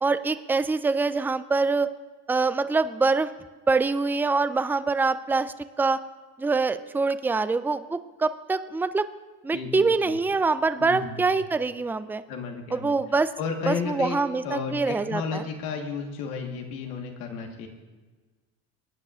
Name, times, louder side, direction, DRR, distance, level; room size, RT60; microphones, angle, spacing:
voice 1, 0.0-1.9 2.3-3.3 3.7-6.0 6.4-9.1 9.4-12.2 12.7-13.3 13.7-15.4, right 4 dB, 5° right, 12 dB, 0.4 m, -24 dB
voice 2, 9.5-10.2 10.8-11.3 12.3-12.9 13.4-17.7, left 5 dB, 90° left, 3 dB, 1.6 m, -33 dB
22.0 x 9.6 x 2.5 m, 1.3 s
supercardioid pair, 70°, 43 cm